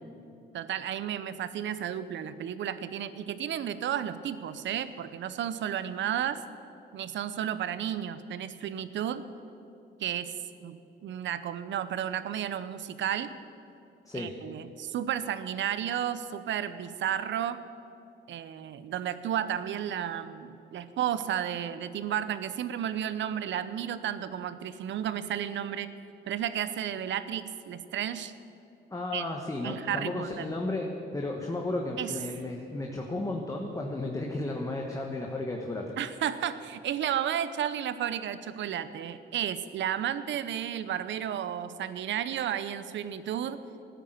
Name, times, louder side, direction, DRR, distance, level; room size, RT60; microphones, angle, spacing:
voice 1, 0.5-6.4 6.9-9.2 10.0-10.3 10.6-13.3 14.1-17.6 18.3-25.9 26.3-28.3 29.1-29.2 29.6-30.5 32.0-32.1 36.0-43.6, right 10 dB, 70° right, 13 dB, 0.8 m, -32 dB
voice 2, 28.9-35.9, left 2 dB, 15° left, 0 dB, 1.4 m, -33 dB
13.5 x 10.0 x 8.0 m, 2.7 s
cardioid pair, 90°, 20 cm